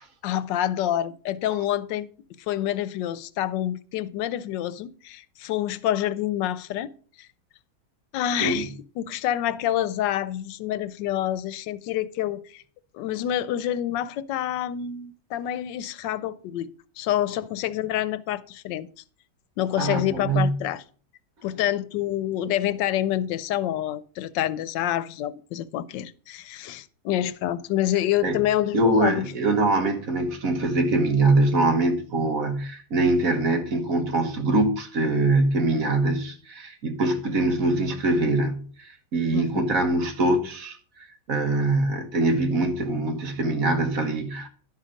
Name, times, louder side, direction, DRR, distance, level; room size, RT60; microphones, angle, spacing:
voice 1, 0.2-2.1 2.4-6.9 7.2-7.3 8.1-8.7 9.0-12.6 12.9-16.7 17.0-18.9 19.6-20.8 21.4-29.3 39.3-39.7, left 12 dB, 90° left, 1.3 m, -27 dB
voice 2, 19.8-20.5 28.2-28.4 28.7-44.5, right 2 dB, 55° right, 1.6 m, -23 dB
11.5 x 5.7 x 5.0 m
omnidirectional pair, 1.9 m